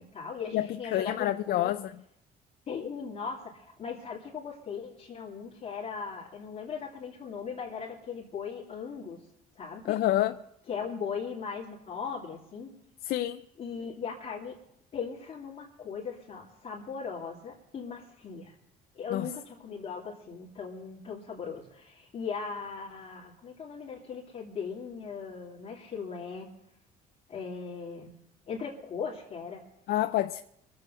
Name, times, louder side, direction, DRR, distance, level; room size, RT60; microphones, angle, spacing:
voice 1, 0.0-1.7 2.7-9.2 9.5-10.0 10.7-12.7 13.6-14.6 14.9-18.5 18.9-26.5 27.3-28.2 28.5-29.6, left 6 dB, 40° left, 2.7 m, -38 dB
voice 2, 0.5-1.9 9.8-10.4 13.0-13.4 19.1-19.3 29.9-30.4, left 13 dB, 65° left, 0.5 m, -28 dB
23.5 x 7.8 x 5.5 m
cardioid pair, 110°, 17 cm